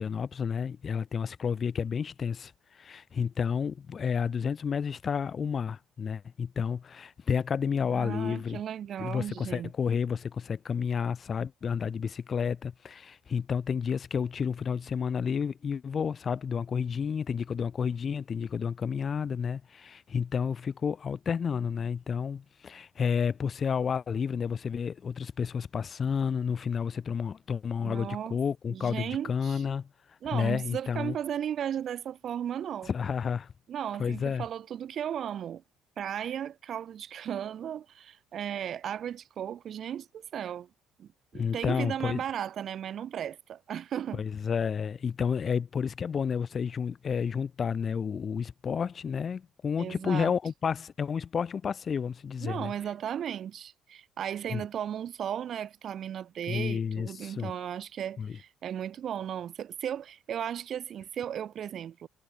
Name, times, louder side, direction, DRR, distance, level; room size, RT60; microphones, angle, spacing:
voice 1, 0.0-8.6 9.0-31.2 32.9-33.5 34.0-34.5 41.3-42.2 44.1-52.7 54.5-54.6 56.5-57.5 58.2-58.4, left 6 dB, 35° left, 2.1 m, -31 dB
voice 2, 7.9-9.7 27.8-28.4 28.7-29.6 30.2-32.9 33.7-35.6 36.0-40.7 41.0-44.2 49.8-50.3 52.4-62.1, right 9 dB, 50° right, 5.6 m, -35 dB
cardioid pair, 125°, 0 cm